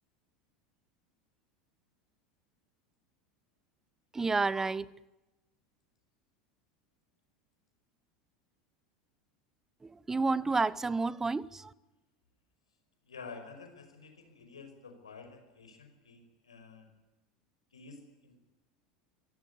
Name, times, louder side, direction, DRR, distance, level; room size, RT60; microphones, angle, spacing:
voice 1, 4.1-4.9 9.8-11.7, right 3 dB, 15° right, 0.8 m, -30 dB
voice 2, 13.0-16.9 17.7-18.4, left 4 dB, 75° left, 5.1 m, -50 dB
27.0 x 16.5 x 9.6 m
figure-of-eight pair, 75°, 3 cm